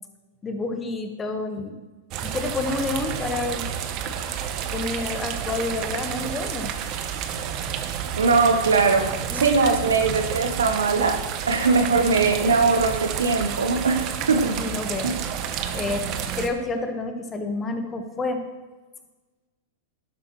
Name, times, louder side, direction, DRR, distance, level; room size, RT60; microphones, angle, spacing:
voice 1, 0.4-1.8 2.2-3.7 4.7-6.7 9.3-10.0 14.5-15.2 15.7-16.1 16.3-18.4, left 3 dB, 20° left, 1.5 m, -29 dB
sound 1, 2.1-16.5, right 8 dB, 40° right, 1.0 m, -30 dB
voice 2, 8.2-14.6 15.0-15.2, right 4 dB, 80° right, 1.1 m, -21 dB
12.0 x 11.5 x 3.2 m
figure-of-eight pair, 100°, 0 cm